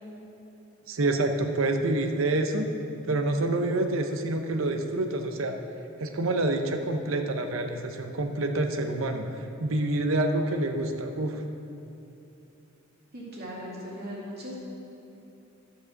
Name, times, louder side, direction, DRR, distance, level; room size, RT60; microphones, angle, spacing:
voice 1, 0.9-2.7 3.0-5.6 6.0-11.4, right 2 dB, 75° right, 5 dB, 0.7 m, -27 dB
voice 2, 13.1-14.5, equal, 50° right, -6 dB, 2.5 m, -38 dB
12.5 x 4.8 x 6.4 m, 2.9 s
head